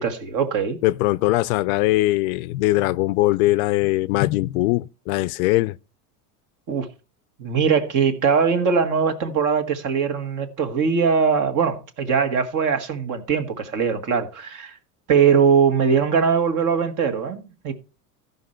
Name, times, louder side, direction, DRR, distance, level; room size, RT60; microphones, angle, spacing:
voice 1, 0.0-0.8 6.7-6.9 7.4-14.8 15.1-17.7, right 6 dB, 40° right, 1.7 m, -21 dB
voice 2, 0.8-5.8, left 18 dB, 65° left, 0.5 m, -21 dB
14.0 x 5.5 x 4.4 m
supercardioid pair, 130°, 46 cm